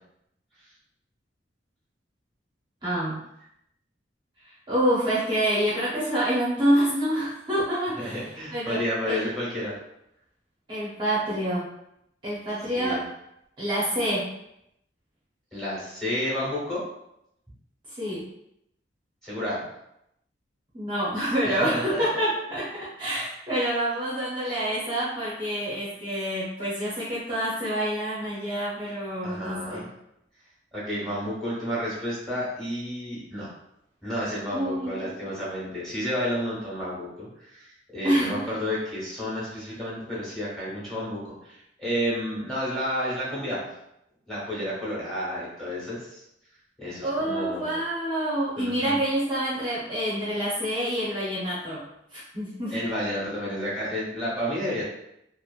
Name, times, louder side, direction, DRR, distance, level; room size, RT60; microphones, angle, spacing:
voice 1, 2.8-3.3 4.4-9.2 10.7-11.7 12.2-13.1 13.6-14.3 17.9-18.3 20.7-29.8 34.5-35.2 38.0-38.5 47.0-52.8, right 1 dB, 25° right, -8 dB, 0.6 m, -27 dB
voice 2, 8.0-9.7 12.7-13.0 15.5-16.8 19.2-19.6 21.4-21.8 29.2-29.9 30.7-33.5 34.0-43.7 44.3-46.2 46.8-47.7 48.6-49.0 52.7-54.8, equal, 5° left, -8 dB, 1.2 m, -31 dB
2.9 x 2.5 x 2.4 m, 0.79 s
head